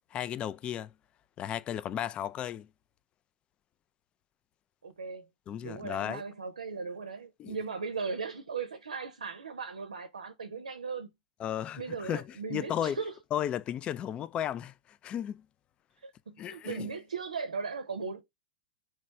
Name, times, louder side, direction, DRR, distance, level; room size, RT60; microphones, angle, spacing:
voice 1, 0.1-0.9 1.4-2.7 5.5-6.2 7.4-7.6 11.4-12.2 12.5-13.0 13.3-14.7 15.0-15.4 16.4-16.9, left 10 dB, 30° left, 0.3 m, -34 dB
voice 2, 4.8-5.3 5.6-11.1 11.8-13.1 16.0-18.2, right 5 dB, 85° right, 0.6 m, -37 dB
3.1 x 3.0 x 4.5 m
hypercardioid pair, 100°, 4 cm